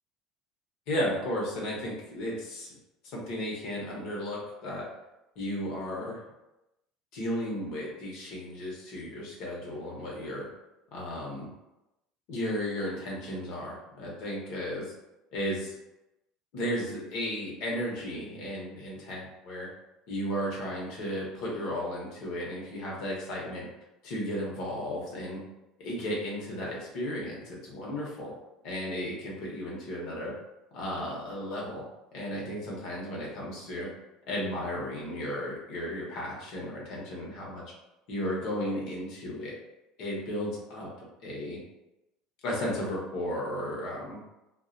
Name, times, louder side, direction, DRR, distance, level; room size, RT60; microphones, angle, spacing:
voice 1, 0.9-2.8 3.0-4.8 5.4-6.2 7.1-10.5 10.9-11.5 12.3-14.9 15.3-15.7 16.5-19.7 20.1-23.7 24.0-25.4 25.8-28.3 28.6-30.3 30.7-31.8 32.1-33.9 34.3-37.6 38.1-39.5 40.0-40.9 41.2-41.6 42.4-44.2, equal, 65° left, -3 dB, 0.9 m, -34 dB
2.3 x 2.1 x 2.5 m, 0.95 s
cardioid pair, 135°, 0 cm